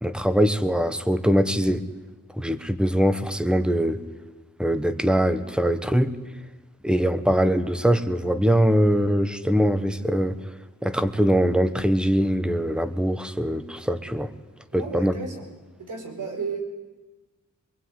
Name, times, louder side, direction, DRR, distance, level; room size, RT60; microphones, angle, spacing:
voice 1, 0.0-1.8 2.4-4.0 4.6-6.1 6.8-10.4 10.8-14.3 14.7-15.1, equal, 5° right, 11 dB, 1.3 m, -22 dB
voice 2, 14.7-15.4 15.8-16.6, right 5 dB, 75° right, 3 dB, 6.1 m, -33 dB
25.0 x 23.0 x 9.8 m, 1.2 s
wide cardioid pair, 165°, 32 cm